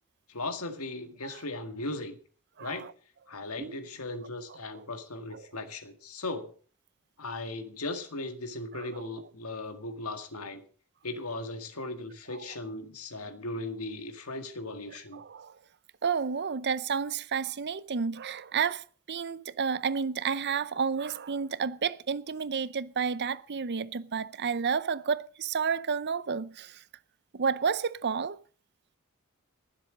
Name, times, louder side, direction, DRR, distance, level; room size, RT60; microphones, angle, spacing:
voice 1, 0.3-2.2 2.6-2.9 3.3-6.5 7.2-10.6 11.0-15.2, left 2 dB, 90° left, 1.8 m, -37 dB
voice 2, 2.6-2.9 3.6-3.8 8.8-9.1 12.3-12.4 15.1-15.5 16.0-26.8 27.3-28.4, right 6 dB, 50° right, 0.6 m, -31 dB
21.0 x 7.6 x 5.1 m
head